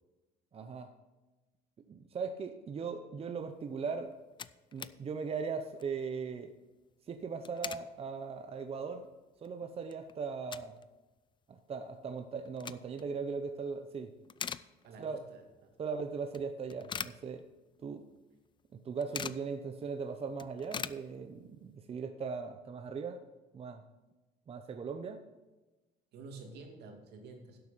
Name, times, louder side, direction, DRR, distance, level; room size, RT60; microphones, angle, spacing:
voice 1, 0.5-0.9 1.9-4.1 4.7-6.5 7.1-9.1 9.4-10.7 11.5-14.1 15.0-15.2 15.8-17.4 17.8-18.0 18.7-23.2 23.5-23.8 24.5-25.2, right 5 dB, 35° right, 7 dB, 0.8 m, -39 dB
sound 1, 3.8-3.9 4.1-5.0 5.4-5.5 5.7-6.0 7.2-7.9 8.4-8.5 9.0-9.1 9.4-10.9 11.2-11.3 12.3-13.1 13.6-13.9 14.2-15.2 15.5-15.6 16.3-17.8 18.1-18.2 18.5-19.5 19.9-20.0 20.2-21.6, left 7 dB, 30° left, 0.4 m, -43 dB
voice 2, 14.8-15.7 26.1-27.6, right 3 dB, 75° right, 3 dB, 2.4 m, -50 dB
11.5 x 8.0 x 5.7 m, 1.1 s
cardioid pair, 110°, 17 cm